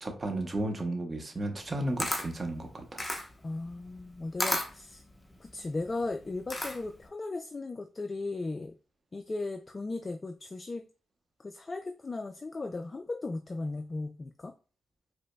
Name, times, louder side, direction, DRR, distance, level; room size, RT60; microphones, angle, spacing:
voice 1, 0.0-3.0, right 1 dB, 35° right, 0.7 m, -34 dB
Camera, 1.6-7.1, left 1 dB, 20° left, 0.7 m, -35 dB
voice 2, 3.4-5.0 5.4-8.7 9.1-10.8 11.4-14.5, left 3 dB, 35° left, 0.3 m, -36 dB
4.9 x 2.0 x 2.2 m
supercardioid pair, 55°, 0 cm